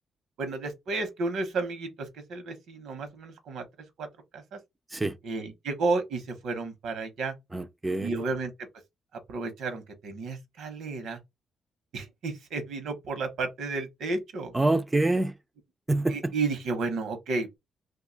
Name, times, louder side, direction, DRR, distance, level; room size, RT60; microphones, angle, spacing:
voice 1, 0.4-3.6 4.0-4.1 4.3-4.6 5.2-7.3 8.0-8.7 9.3-11.2 11.9-14.5 16.1-17.6, right 3 dB, 85° right, 0.9 m, -32 dB
voice 2, 7.5-8.2 14.5-15.3 15.9-16.3, right 2 dB, 15° right, 0.4 m, -26 dB
2.6 x 2.3 x 3.9 m
cardioid pair, 140°, 0 cm